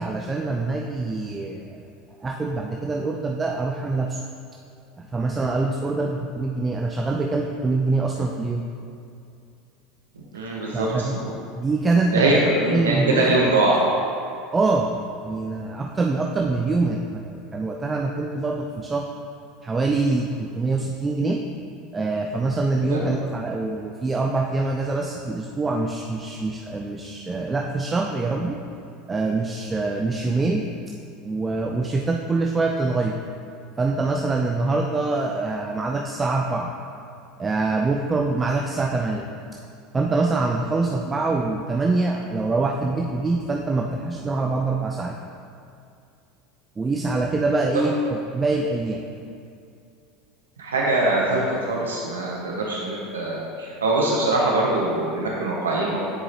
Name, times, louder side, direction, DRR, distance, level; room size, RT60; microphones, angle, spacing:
voice 1, 0.0-1.8 2.2-4.2 5.0-8.6 10.7-11.2 11.6-12.3 12.7-13.5 14.5-14.9 15.2-19.1 19.6-21.4 21.9-28.6 29.1-30.7 31.2-33.1 33.8-36.7 37.4-39.3 39.9-45.2 46.8-49.0, right 3 dB, 20° right, 1 dB, 0.5 m, -24 dB
voice 2, 10.3-11.3 12.1-12.3 12.6-13.8 22.9-23.0 47.7-47.8 50.6-56.0, right 2 dB, 80° right, -3 dB, 0.8 m, -23 dB
9.8 x 4.8 x 2.9 m, 2.5 s
figure-of-eight pair, 75°, 0 cm